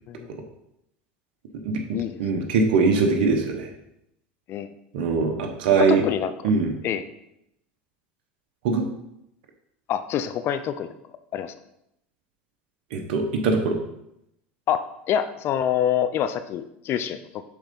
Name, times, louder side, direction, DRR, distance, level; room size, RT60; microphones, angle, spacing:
voice 1, 2.2-3.7 4.9-6.0 6.4-6.7 8.6-8.8 12.9-13.8, right 4 dB, 75° right, 3 dB, 1.1 m, -21 dB
voice 2, 5.8-6.3 6.8-7.1 9.9-10.9 11.3-11.5 14.7-17.4, left 9 dB, 45° left, 11 dB, 0.5 m, -26 dB
7.3 x 3.8 x 5.3 m, 0.81 s
supercardioid pair, 105°, 6 cm